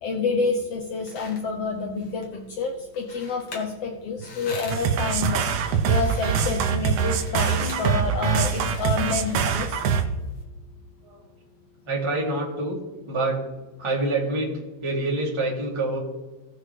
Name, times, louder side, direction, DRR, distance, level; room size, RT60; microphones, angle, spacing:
voice 1, 0.0-9.8, left 4 dB, 80° left, 2 dB, 1.4 m, -28 dB
sound 1, 0.7-10.4, left 3 dB, 50° left, 2.2 m, -44 dB
sound 2, 4.7-10.1, right 7 dB, 70° right, 1.8 m, -24 dB
voice 2, 11.9-12.8 13.1-13.4 13.8-16.0, right 2 dB, 10° right, -5 dB, 2.0 m, -26 dB
17.5 x 6.4 x 3.3 m, 1.2 s
omnidirectional pair, 3.8 m